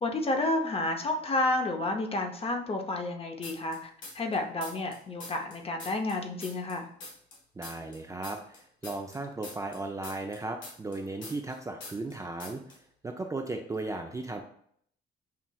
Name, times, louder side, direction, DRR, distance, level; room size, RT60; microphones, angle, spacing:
voice 1, 0.0-6.9, left 2 dB, 30° left, 4 dB, 0.6 m, -30 dB
sound 1, 3.4-4.3 4.6-7.4 7.6-11.5 11.8-12.1 12.4-12.8, left 2 dB, 75° left, 1.3 m, -44 dB
voice 2, 7.6-12.6 13.0-14.4, right 2 dB, 15° right, 3 dB, 0.4 m, -36 dB
5.6 x 2.4 x 2.2 m, 0.64 s
cardioid pair, 90°, 20 cm